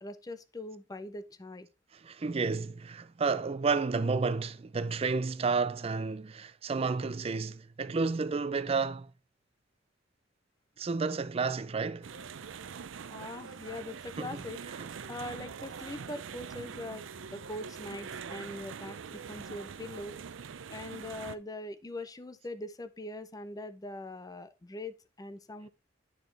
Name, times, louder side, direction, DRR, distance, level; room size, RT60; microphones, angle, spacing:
voice 1, 0.0-1.7 13.1-14.6 15.1-17.1 17.3-20.2 20.7-25.7, left 2 dB, 20° left, 0.5 m, -42 dB
voice 2, 1.9-9.1 10.8-12.1 14.2-14.4, right 4 dB, 30° right, 0.4 m, -31 dB
sound 1, 12.0-21.3, right 6 dB, 90° right, 0.5 m, -43 dB
8.9 x 6.0 x 3.2 m
head